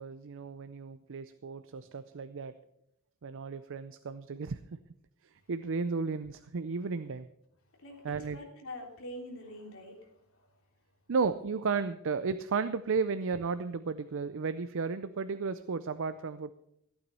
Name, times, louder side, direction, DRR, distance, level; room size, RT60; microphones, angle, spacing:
voice 1, 0.0-2.5 3.2-4.6 5.5-7.3 8.0-8.4 11.1-16.5, right 5 dB, 60° right, 12 dB, 0.5 m, -33 dB
voice 2, 7.8-10.5, left 1 dB, 65° left, 0 dB, 3.3 m, -45 dB
15.0 x 8.9 x 5.5 m, 0.76 s
head